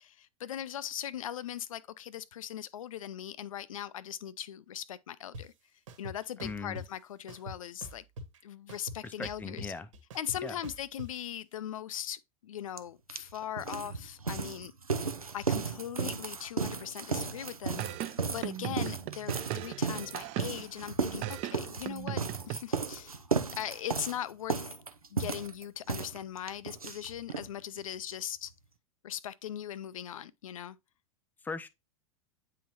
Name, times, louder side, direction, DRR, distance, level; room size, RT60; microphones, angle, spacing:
voice 1, 0.0-5.5 6.0-8.0 8.4-9.7 10.1-14.7 15.3-23.2 23.5-24.8 25.1-28.5 29.0-30.8, left 10 dB, 70° left, 0.4 m, -40 dB
sound 1, 5.3-5.4 5.9-6.9 7.3-8.4 8.7-11.1, right 1 dB, 65° right, 1.5 m, -43 dB
voice 2, 6.4-6.8 9.0-9.9 10.4-10.6 31.4-31.7, left 4 dB, 10° left, 0.5 m, -39 dB
sound 2, 12.8-12.9 13.1-27.5 27.8-27.9 28.1-28.2 28.5-28.6, right 4 dB, 90° right, 0.6 m, -34 dB
sound 3, 17.8-20.8 21.2-22.6, right 14 dB, 40° right, 0.7 m, -38 dB
9.1 x 3.8 x 2.9 m
figure-of-eight pair, 90°, 18 cm